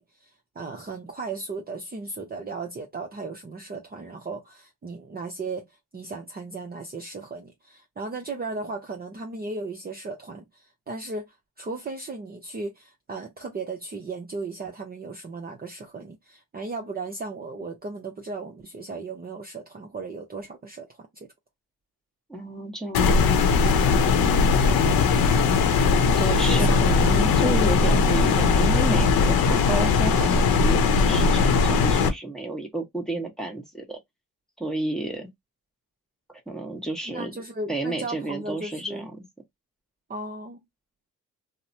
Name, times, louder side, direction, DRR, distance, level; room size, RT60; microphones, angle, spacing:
voice 1, 0.6-5.7 5.9-21.3 24.2-24.5 26.4-27.5 37.1-39.1 40.1-40.6, right 3 dB, 25° right, 0.7 m, -36 dB
voice 2, 22.3-23.4 26.2-34.0 34.6-35.3 36.3-37.3 37.7-39.2, right 2 dB, ahead, 1.1 m, -31 dB
sound 1, 22.9-32.1, left 4 dB, 75° left, 0.8 m, -20 dB
3.0 x 2.1 x 2.6 m
cardioid pair, 80°, 36 cm